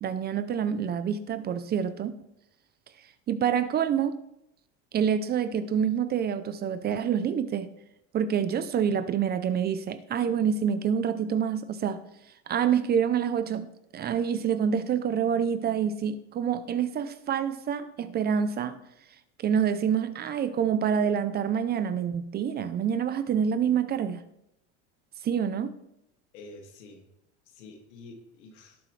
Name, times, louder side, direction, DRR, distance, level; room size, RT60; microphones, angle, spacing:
voice 1, 0.0-2.1 3.3-4.2 4.9-7.7 8.1-12.0 12.5-18.8 19.4-24.2 25.2-25.8, right 8 dB, 30° right, 0.6 m, -27 dB
voice 2, 26.3-27.1 27.5-28.8, left 2 dB, 85° left, 2.3 m, -48 dB
18.0 x 7.4 x 3.3 m
supercardioid pair, 130°, 34 cm